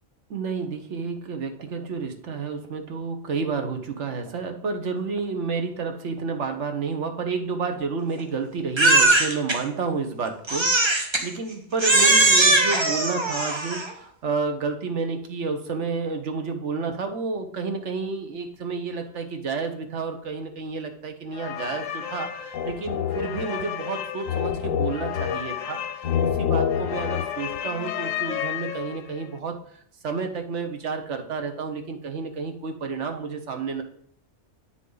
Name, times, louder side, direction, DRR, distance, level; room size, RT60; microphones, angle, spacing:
voice 1, 0.3-25.8 26.2-29.6 30.0-33.8, right 4 dB, 65° right, 5 dB, 1.3 m, -30 dB
Crying sobbing, 8.8-9.6 10.5-11.3 11.8-13.9, right 2 dB, 25° right, 1.0 m, -19 dB
sound 1, 21.3-29.2, left 9 dB, 90° left, 1.1 m, -28 dB
9.0 x 6.2 x 3.9 m, 0.65 s
omnidirectional pair, 1.3 m